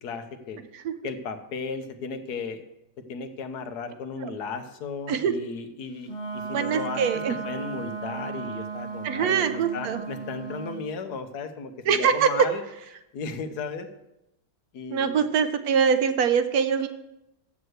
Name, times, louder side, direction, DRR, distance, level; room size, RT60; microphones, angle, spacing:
voice 1, 0.0-0.6 1.0-2.6 3.1-7.0 7.4-12.6 13.1-13.9 14.7-15.2, left 4 dB, 70° left, 8 dB, 1.4 m, -35 dB
Wind instrument woodwind instrument, 6.0-10.8, right 5 dB, 15° left, 1.2 m, -35 dB
voice 2, 6.5-7.4 9.0-10.0 11.9-12.5 14.9-16.9, right 7 dB, 70° right, 10 dB, 1.0 m, -23 dB
7.8 x 6.6 x 7.9 m, 0.89 s
omnidirectional pair, 1.8 m